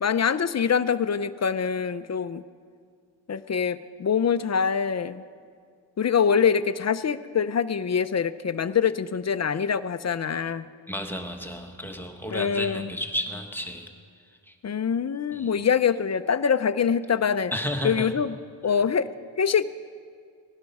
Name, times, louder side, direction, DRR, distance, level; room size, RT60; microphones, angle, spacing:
voice 1, 0.0-2.4 3.3-5.2 6.0-10.7 12.3-12.9 14.6-17.5 17.8-18.3 18.6-19.1 19.4-19.6, left 7 dB, 35° left, 14 dB, 0.5 m, -24 dB
voice 2, 10.9-13.9 14.5-14.6 15.3-15.6 17.5-18.1, equal, 5° left, 4 dB, 1.3 m, -32 dB
17.5 x 11.5 x 5.3 m, 2.1 s
cardioid pair, 75°, 47 cm